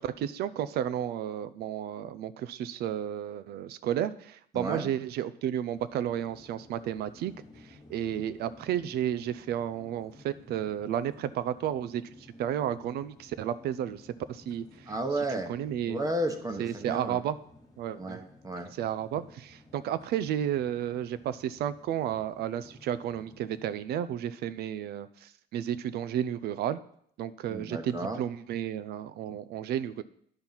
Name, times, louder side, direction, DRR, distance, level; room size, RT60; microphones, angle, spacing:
voice 1, 0.0-7.3 7.9-12.0 12.4-14.0 14.3-14.9 15.5-16.0 16.6-17.4 17.8-18.2 18.8-26.8 27.2-30.0, right 10 dB, 70° right, 14 dB, 0.5 m, -32 dB
voice 2, 4.5-4.9 14.9-15.5 15.9-17.2 17.9-18.7 27.5-28.2, right 1 dB, 20° right, 5 dB, 0.9 m, -33 dB
sound 1, 5.7-23.8, left 1 dB, 25° left, 1.5 m, -55 dB
10.5 x 4.5 x 5.5 m, 0.65 s
cardioid pair, 110°, 17 cm